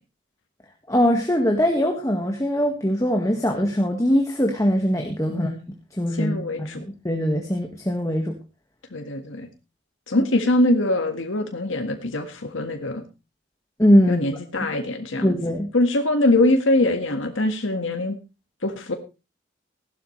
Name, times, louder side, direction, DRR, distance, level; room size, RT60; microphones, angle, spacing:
voice 1, 0.9-5.5 6.0-8.4 10.2-10.3 13.8-14.2 15.2-15.7, equal, 15° left, 2 dB, 1.7 m, -21 dB
voice 2, 5.3-5.7 6.2-6.8 8.9-9.5 10.1-13.0 14.1-15.4 15.7-18.2 18.6-18.9, left 1 dB, 90° left, 4 dB, 1.7 m, -23 dB
16.5 x 12.0 x 3.2 m, 0.30 s
head